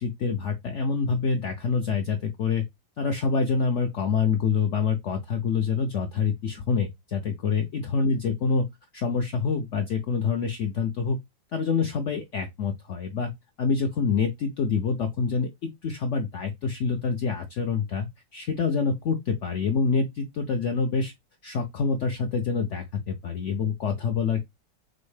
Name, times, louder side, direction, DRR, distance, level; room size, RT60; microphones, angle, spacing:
voice 1, 0.0-2.6 3.0-8.7 8.9-11.2 11.5-13.3 13.6-15.5 15.8-18.1 18.3-21.1 21.4-24.4, left 5 dB, 65° left, 0.7 m, -26 dB
6.2 x 2.1 x 3.2 m
omnidirectional pair, 1.8 m